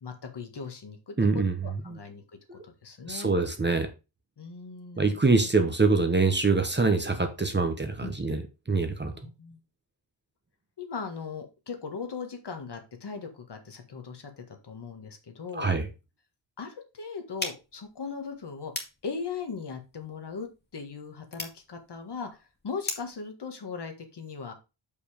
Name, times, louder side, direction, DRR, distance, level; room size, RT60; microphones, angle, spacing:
voice 1, 0.0-2.2 2.5-3.3 4.4-5.1 5.4-5.5 8.0-8.4 9.2-9.6 10.8-15.7 16.6-24.5, left 5 dB, 55° left, 5 dB, 1.8 m, -39 dB
voice 2, 1.2-1.6 1.9-2.0 2.5-2.6 3.1-3.9 5.0-8.4 8.7-9.1 15.5-15.9, right 3 dB, 20° right, 7 dB, 1.0 m, -24 dB
sound 1, 17.4-23.2, left 2 dB, 20° left, 2.0 m, -41 dB
6.9 x 5.5 x 5.0 m, 0.28 s
wide cardioid pair, 160°, 48 cm